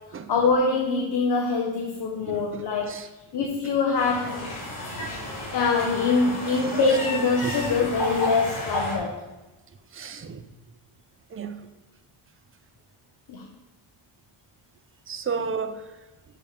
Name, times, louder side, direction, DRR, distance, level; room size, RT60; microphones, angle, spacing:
voice 1, 0.3-3.0 3.3-4.5 5.5-9.2 13.3-13.4, left 4 dB, 50° left, 1 dB, 1.1 m, -24 dB
voice 2, 2.3-3.1 3.4-3.5 5.0-5.1 7.4-7.5 9.9-10.5 11.3-11.6 15.1-15.9, right 5 dB, 25° right, 9 dB, 0.4 m, -33 dB
sound 1, 3.9-9.0, left 1 dB, 75° left, 3.3 m, -32 dB
6.8 x 5.3 x 6.5 m, 1.1 s
wide cardioid pair, 165°, 50 cm